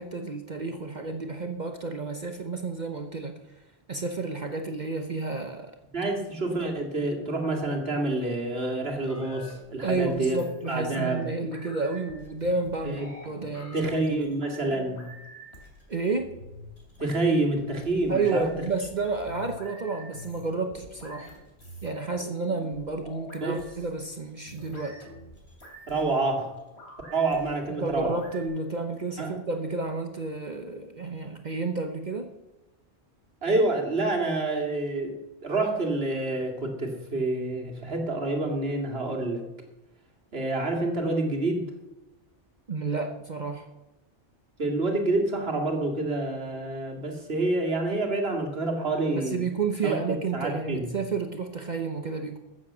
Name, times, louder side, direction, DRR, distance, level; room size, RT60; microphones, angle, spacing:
voice 1, 0.0-3.3 3.9-5.7 9.8-14.0 15.9-16.3 18.1-21.3 21.8-25.0 27.8-32.3 42.7-43.7 49.1-52.4, right 3 dB, 45° right, 5 dB, 1.0 m, -31 dB
voice 2, 5.9-10.4 10.7-11.2 12.8-13.1 13.7-15.1 17.0-18.5 23.4-23.6 25.9-26.5 27.1-28.1 29.2-29.3 33.4-39.5 40.3-41.6 44.6-49.4 49.8-49.9 50.3-50.9, right 2 dB, 60° right, 2 dB, 2.5 m, -27 dB
sound 1, 9.1-28.5, left 1 dB, 65° left, 3.6 m, -46 dB
14.0 x 7.6 x 7.3 m, 0.99 s
omnidirectional pair, 1.2 m